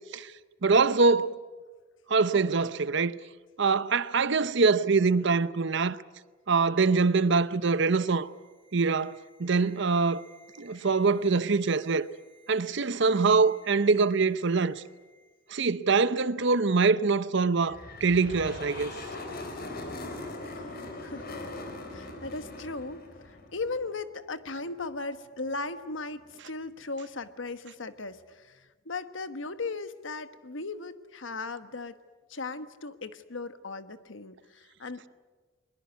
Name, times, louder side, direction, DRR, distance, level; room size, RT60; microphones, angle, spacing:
voice 1, 0.6-1.4 2.1-3.2 3.6-6.0 6.5-8.3 8.7-10.3 10.6-12.1 12.5-14.8 15.5-18.9, right 4 dB, 65° right, 0.8 m, -24 dB
sound 1, 6.4-15.7 16.0-16.1, right 2 dB, 25° right, 7.1 m, -60 dB
sound 2, 17.6-24.0, left 2 dB, 50° left, 3.9 m, -40 dB
voice 2, 21.9-31.9 32.3-35.1, left 3 dB, 70° left, 1.3 m, -37 dB
22.0 x 21.5 x 9.5 m
head